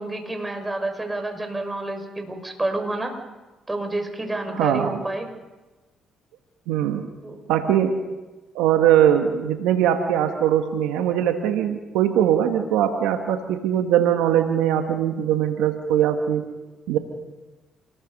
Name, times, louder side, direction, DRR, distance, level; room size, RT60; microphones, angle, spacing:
voice 1, 0.0-3.1 3.7-5.3 7.2-7.4, right 2 dB, 15° right, 5 dB, 5.9 m, -29 dB
voice 2, 4.6-5.0 6.7-7.1 7.5-8.0 8.5-16.5 16.9-17.0, right 10 dB, 85° right, 5 dB, 1.7 m, -21 dB
28.0 x 21.0 x 5.5 m, 1.1 s
supercardioid pair, 60°, 0 cm